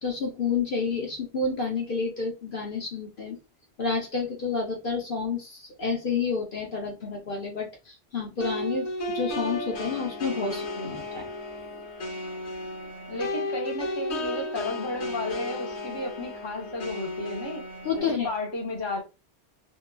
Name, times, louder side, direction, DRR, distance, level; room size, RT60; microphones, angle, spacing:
voice 1, 0.0-3.4 3.8-11.2 17.8-18.3, left 5 dB, 55° left, 0.9 m, -30 dB
sound 1, 8.4-18.0, left 1 dB, 80° left, 1.1 m, -34 dB
voice 2, 13.1-17.6 18.0-19.0, left 2 dB, 25° left, 0.8 m, -33 dB
2.8 x 2.3 x 2.2 m
omnidirectional pair, 1.1 m